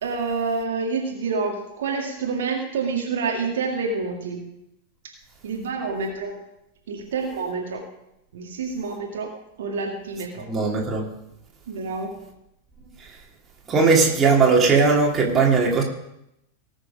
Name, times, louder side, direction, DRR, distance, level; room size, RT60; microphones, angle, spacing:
voice 1, 0.0-4.5 5.4-6.3 6.9-7.8 8.3-9.3 9.6-10.5 11.7-12.1, right 4 dB, 60° right, 0 dB, 1.9 m, -28 dB
voice 2, 10.5-11.1 13.0-13.1 13.7-15.8, right 4 dB, 25° right, -1 dB, 3.1 m, -18 dB
19.0 x 6.6 x 5.1 m, 0.83 s
figure-of-eight pair, 90°, 0 cm